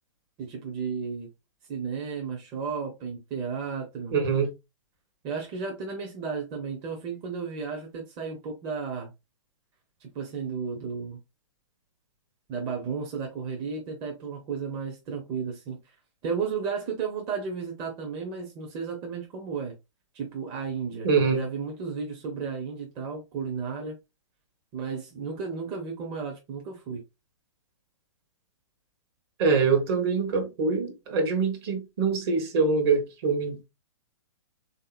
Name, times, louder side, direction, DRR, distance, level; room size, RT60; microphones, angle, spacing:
voice 1, 0.4-1.3 1.7-4.1 5.2-9.1 10.0-11.2 12.5-15.8 16.2-19.7 20.1-24.0 24.7-27.0, right 5 dB, 30° right, 0.7 m, -33 dB
voice 2, 4.1-4.5 21.0-21.4 29.4-33.7, right 4 dB, 50° right, 1.1 m, -24 dB
3.5 x 2.8 x 2.4 m
hypercardioid pair, 125°, 17 cm